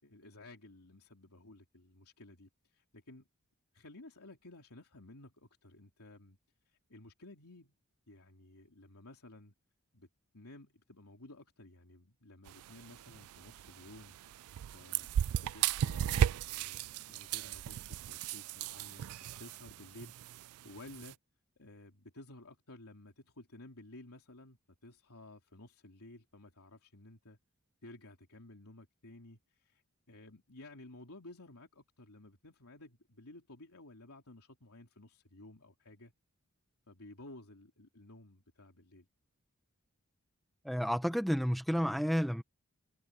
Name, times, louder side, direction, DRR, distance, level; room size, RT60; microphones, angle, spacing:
voice 1, 0.0-3.3 3.7-6.4 6.6-7.7 8.1-9.5 9.9-10.1 10.3-15.1 15.5-21.2 21.6-27.4 27.8-29.8 30.1-36.1 36.9-39.1, left 2 dB, 80° left, 3.2 m, -54 dB
sound 1, 12.5-21.1, right 10 dB, 70° right, 0.3 m, -36 dB
voice 2, 40.6-42.4, equal, ahead, 1.1 m, -31 dB
head